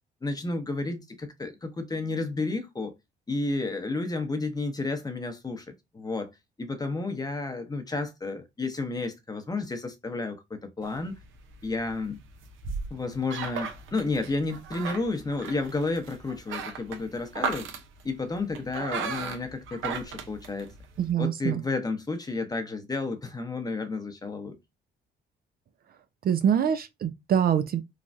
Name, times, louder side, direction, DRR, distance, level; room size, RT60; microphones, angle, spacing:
voice 1, 0.2-2.9 3.3-5.7 5.9-6.3 6.6-11.2 11.6-12.2 12.9-17.7 18.0-20.7 21.2-24.5, left 3 dB, 20° left, 0.8 m, -31 dB
sound 1, 10.8-21.1, right 5 dB, 80° right, 0.7 m, -37 dB
voice 2, 21.0-21.6 26.2-27.8, right 9 dB, 50° right, 0.4 m, -24 dB
3.2 x 2.3 x 2.5 m
cardioid pair, 90°, 20 cm